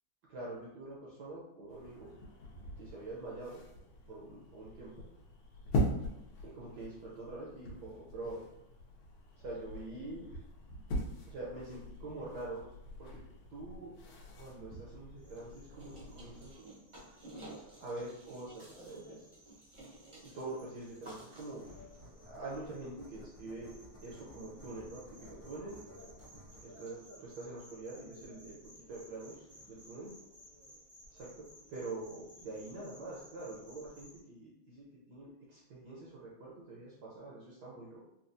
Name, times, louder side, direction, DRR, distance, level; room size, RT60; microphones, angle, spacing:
voice 1, 0.3-2.1 2.8-3.6 4.1-4.9 6.4-8.4 9.4-10.2 11.2-12.6 13.0-13.2 13.5-14.0 14.4-16.6 17.8-19.3 20.2-21.6 22.2-23.8 24.0-25.0 25.4-25.8 26.6-28.6 28.9-30.1 31.1-38.1, right 2 dB, 65° right, -5 dB, 1.1 m, -45 dB
sound 1, 1.7-16.6, equal, 85° left, 1.5 m, -42 dB
sound 2, 15.2-34.2, right 1 dB, 40° right, 0.4 m, -55 dB
sound 3, 21.6-30.1, left 1 dB, 55° left, 0.9 m, -57 dB
4.2 x 2.3 x 2.6 m, 0.88 s
omnidirectional pair, 2.2 m